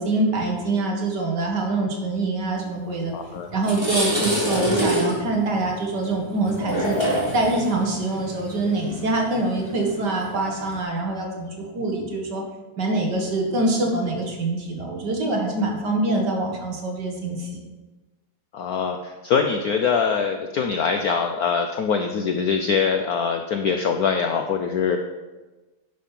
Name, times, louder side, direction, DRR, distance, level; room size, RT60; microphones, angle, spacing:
voice 1, 0.0-3.1 3.5-7.0 7.3-12.4 12.8-17.6, right 2 dB, 55° right, 1 dB, 2.1 m, -25 dB
sound 1, 3.0-3.1 3.5-10.8, equal, 10° right, 2.6 m, -27 dB
voice 2, 3.1-3.5 18.5-25.0, left 6 dB, 70° left, 5 dB, 0.9 m, -23 dB
10.0 x 5.4 x 5.8 m, 1.2 s
omnidirectional pair, 2.2 m